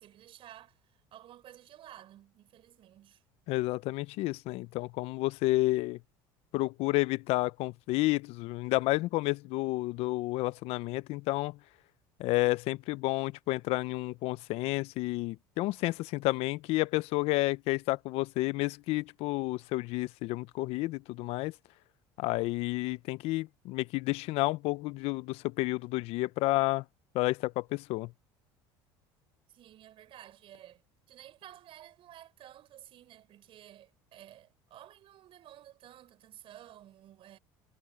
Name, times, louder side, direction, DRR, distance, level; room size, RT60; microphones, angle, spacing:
voice 1, 0.0-3.2 29.5-30.8 31.1-37.4, right 12 dB, 55° right, 6.7 m, -53 dB
voice 2, 3.5-6.0 6.5-11.6 12.2-21.5 22.2-26.8 27.1-28.1, left 20 dB, 65° left, 0.7 m, -30 dB
supercardioid pair, 90°, 11 cm